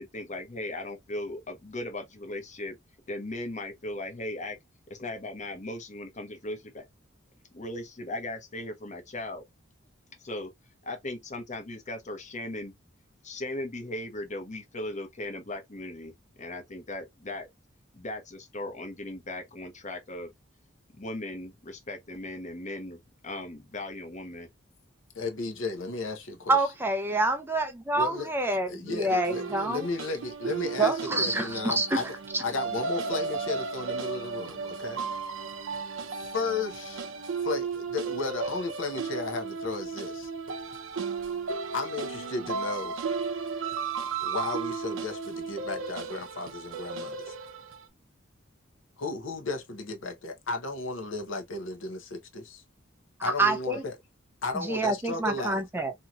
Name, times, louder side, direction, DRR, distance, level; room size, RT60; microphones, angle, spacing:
voice 1, 0.0-2.8 3.1-4.6 4.9-6.8 7.5-9.4 10.2-10.5 10.9-12.7 13.2-16.1 16.4-17.5 17.9-20.3 20.9-24.5, left 1 dB, 40° left, 0.9 m, -37 dB
voice 2, 25.2-26.6 27.9-32.1 32.4-35.0 36.3-37.0 37.4-40.3 41.7-43.0 44.2-47.3 49.0-52.6 53.2-53.9 54.4-55.6, left 3 dB, 75° left, 0.8 m, -34 dB
voice 3, 26.5-29.9 30.8-32.0 32.3-32.4 53.4-53.8 54.5-55.9, right 2 dB, 10° right, 0.4 m, -27 dB
sound 1, 29.1-47.8, right 5 dB, 85° right, 0.5 m, -34 dB
2.8 x 2.7 x 2.3 m
head